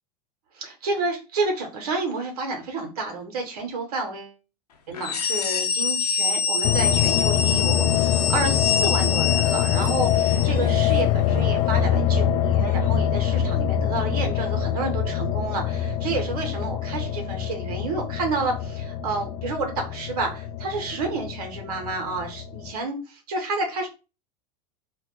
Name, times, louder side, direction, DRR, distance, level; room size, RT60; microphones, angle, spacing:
voice 1, 0.5-4.3 4.9-23.9, right 3 dB, 65° right, 3 dB, 1.0 m, -30 dB
sound 1, 4.9-10.6, left 7 dB, 70° left, 0.7 m, -25 dB
sound 2, 6.6-22.7, left 9 dB, 40° left, 0.4 m, -24 dB
2.5 x 2.3 x 3.7 m, 0.30 s
figure-of-eight pair, 85°, 21 cm